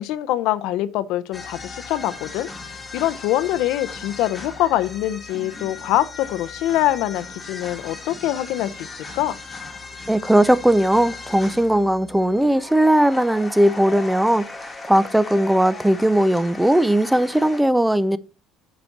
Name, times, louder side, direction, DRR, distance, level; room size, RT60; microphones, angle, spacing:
voice 1, 0.0-9.3, left 13 dB, 70° left, 0.6 m, -24 dB
sound 1, 1.3-17.6, left 3 dB, 15° left, 1.4 m, -37 dB
voice 2, 10.1-18.2, right 1 dB, 5° right, 0.4 m, -18 dB
7.1 x 4.3 x 6.6 m
cardioid pair, 115°, 0 cm